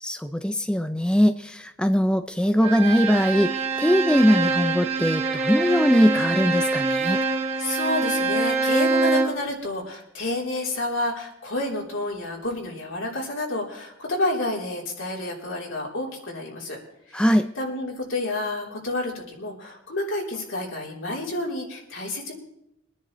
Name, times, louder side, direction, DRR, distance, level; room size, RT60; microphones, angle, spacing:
voice 1, 0.0-7.2 17.1-17.4, equal, 5° left, 8 dB, 0.4 m, -21 dB
Bowed string instrument, 2.6-9.5, right 3 dB, 30° right, 1.5 m, -25 dB
voice 2, 7.1-16.8 17.1-22.3, left 2 dB, 75° left, -2 dB, 3.4 m, -30 dB
24.0 x 10.5 x 3.1 m, 0.80 s
head